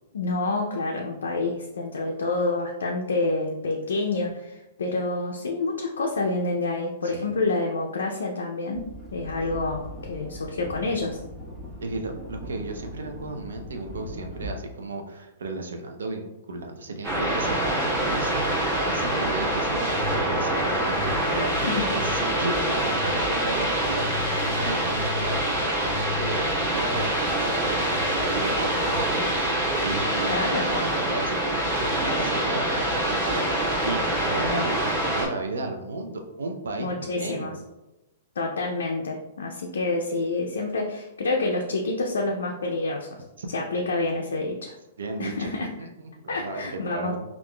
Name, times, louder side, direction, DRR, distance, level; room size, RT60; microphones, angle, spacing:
voice 1, 0.1-8.9 9.1-11.2 21.6-21.9 30.3-30.7 36.8-37.5 38.4-43.2 43.5-44.8 45.2-45.7 46.3-47.2, left 2 dB, 80° left, 0 dB, 0.4 m, -28 dB
sound 1, 8.7-14.5, equal, 10° right, 1.0 m, -40 dB
voice 2, 11.8-21.5 21.9-24.1 24.6-27.9 28.1-29.3 29.8-37.6 43.4-43.5 43.7-44.0 45.0-47.2, right 2 dB, 80° right, 4 dB, 0.4 m, -34 dB
sound 2, 17.0-35.3, right 1 dB, 40° right, 1.3 m, -25 dB
3.5 x 2.4 x 2.2 m, 0.97 s
hypercardioid pair, 120°, 0 cm